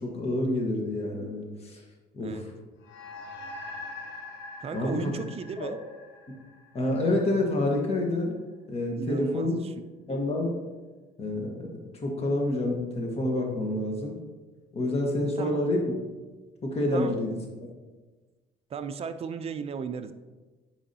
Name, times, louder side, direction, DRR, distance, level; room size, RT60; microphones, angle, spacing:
voice 1, 0.0-1.8 2.1-2.4 4.7-5.1 5.6-5.7 6.7-8.4 8.7-9.6 10.1-10.5 11.2-14.1 14.7-15.9 16.6-17.4, left 1 dB, 35° left, 0 dB, 1.5 m, -28 dB
sound 1, 2.8-7.5, left 2 dB, 90° left, 1.3 m, -43 dB
voice 2, 4.6-5.8 9.0-9.9 15.4-15.6 16.9-17.2 18.7-20.1, right 6 dB, 35° right, 9 dB, 0.5 m, -35 dB
8.9 x 4.8 x 2.9 m, 1.3 s
cardioid pair, 110°, 17 cm